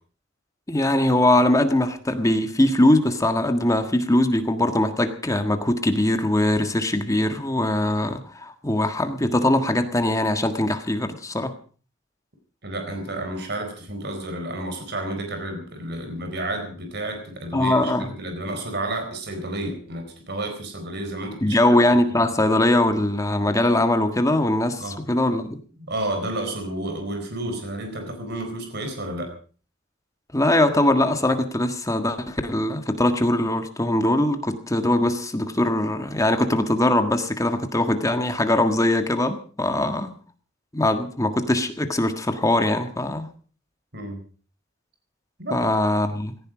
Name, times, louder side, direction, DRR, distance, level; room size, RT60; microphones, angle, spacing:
voice 1, 0.7-11.6 17.5-18.1 21.4-25.6 30.3-40.2 40.7-43.3 45.5-46.4, left 1 dB, 15° left, 7 dB, 1.6 m, -21 dB
voice 2, 12.6-17.9 18.2-21.6 24.8-25.0 25.8-29.3 43.9-44.2 45.4-45.7, right 1 dB, 60° right, 6 dB, 4.3 m, -31 dB
17.0 x 15.5 x 5.0 m, 0.40 s
head